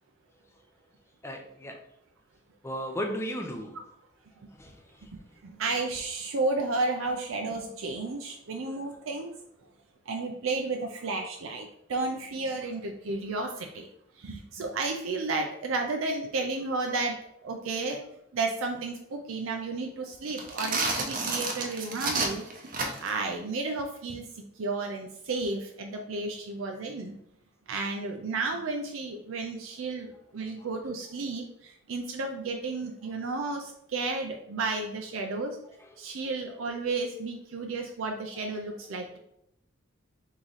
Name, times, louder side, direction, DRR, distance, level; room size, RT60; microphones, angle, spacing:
voice 1, 1.2-1.8 2.6-3.8 4.6-5.1 39.1-39.2, equal, 15° left, 3 dB, 0.5 m, -35 dB
voice 2, 5.1-9.3 10.1-13.9 14.2-17.2 17.4-18.0 18.3-22.5 23.0-27.2 27.7-35.6 36.0-39.2, right 3 dB, 80° right, 3 dB, 0.5 m, -32 dB
sound 1, 20.3-23.2, right 3 dB, 40° right, 0.7 m, -30 dB
3.6 x 3.1 x 4.0 m, 0.73 s
head